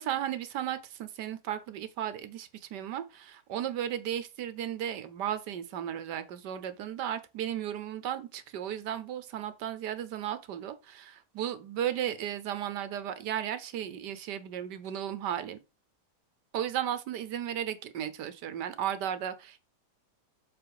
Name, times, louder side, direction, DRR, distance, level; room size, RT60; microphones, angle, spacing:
voice 1, 0.0-15.6 16.5-19.6, right 10 dB, 80° right, 1.5 m, -35 dB
7.0 x 4.1 x 4.8 m
omnidirectional pair, 1.8 m